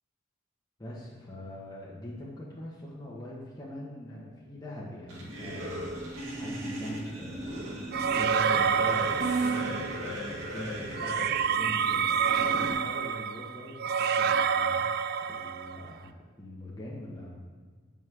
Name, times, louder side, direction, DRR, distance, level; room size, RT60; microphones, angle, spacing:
voice 1, 0.8-5.9 6.3-12.1 12.3-14.9 15.2-17.4, left 1 dB, 20° left, -6 dB, 1.2 m, -42 dB
sound 1, 5.1-12.7, right 1 dB, 80° right, 2.0 m, -36 dB
sound 2, 7.9-10.1 11.0-15.9, right 7 dB, 55° right, 0.3 m, -28 dB
6.3 x 5.6 x 6.2 m, 1.5 s
head